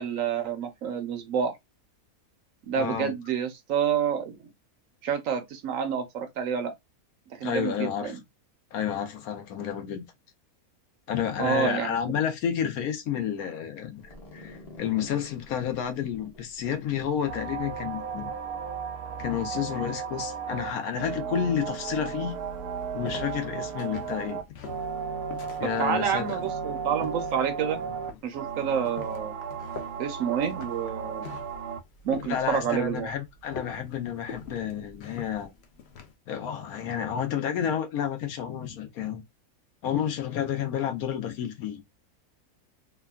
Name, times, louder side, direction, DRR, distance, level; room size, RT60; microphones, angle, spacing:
voice 1, 0.0-1.5 2.6-4.4 5.0-6.7 7.3-8.2 11.4-12.1 25.8-27.8 28.2-29.3 30.0-31.3 32.0-33.1, right 8 dB, 70° right, 1.0 m, -28 dB
voice 2, 2.8-3.1 7.4-8.2 8.7-10.1 11.1-18.3 19.2-22.4 22.9-24.4 25.6-26.4 32.2-35.5 36.3-39.2 39.8-41.8, left 9 dB, 75° left, 1.2 m, -30 dB
sound 1, 14.0-18.6, left 2 dB, 30° left, 0.9 m, -51 dB
sound 2, 17.2-31.8, right 6 dB, 90° right, 1.1 m, -35 dB
sound 3, 21.6-36.1, left 5 dB, 60° left, 0.7 m, -46 dB
3.5 x 2.2 x 2.3 m
omnidirectional pair, 1.6 m